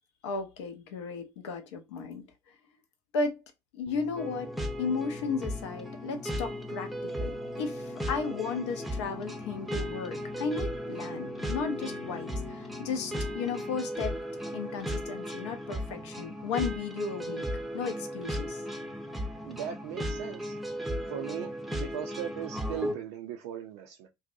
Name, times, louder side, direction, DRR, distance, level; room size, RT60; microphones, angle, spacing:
voice 1, 0.2-2.3 3.1-3.4 3.7-4.5 4.8-14.2 14.5-17.5 17.7-18.6, left 5 dB, 80° left, 0.5 m, -34 dB
sound 1, 3.9-14.0 14.8-14.9, left 4 dB, 35° left, 0.7 m, -45 dB
sound 2, 4.2-22.9, equal, ahead, 0.5 m, -36 dB
voice 2, 19.4-20.6 21.1-24.1, right 10 dB, 70° right, 0.4 m, -38 dB
2.6 x 2.1 x 2.5 m
hypercardioid pair, 55°, 15 cm